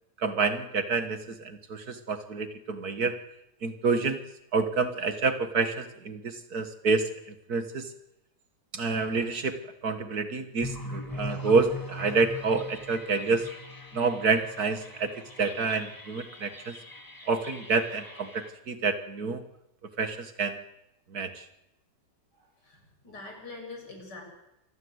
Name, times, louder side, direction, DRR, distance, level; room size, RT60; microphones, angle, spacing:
voice 1, 0.2-3.1 3.6-4.2 4.5-7.1 7.5-7.9 8.7-13.5 13.9-15.1 15.4-16.8 17.3-19.4 20.0-20.6 21.1-21.5, right 4 dB, 60° right, 9 dB, 2.1 m, -28 dB
sound 1, 10.6-18.5, left 1 dB, 10° left, 1.8 m, -41 dB
voice 2, 22.3-24.2, left 3 dB, 70° left, 2 dB, 8.3 m, -44 dB
26.5 x 20.0 x 8.1 m, 0.88 s
omnidirectional pair, 1.9 m